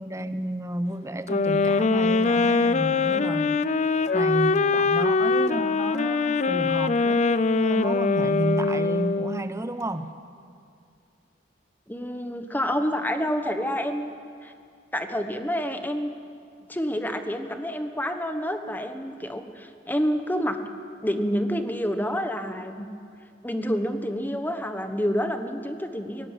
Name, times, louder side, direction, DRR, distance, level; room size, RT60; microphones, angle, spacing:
voice 1, 0.0-10.1, right 1 dB, 15° right, 11 dB, 0.8 m, -31 dB
sound 1, 1.3-9.5, left 4 dB, 40° left, 0.5 m, -23 dB
voice 2, 11.9-14.1 14.4-14.5 14.9-16.2 16.6-20.6 21.0-22.9 23.4-26.3, equal, 10° left, 7 dB, 1.2 m, -28 dB
17.5 x 17.5 x 9.5 m, 2.3 s
head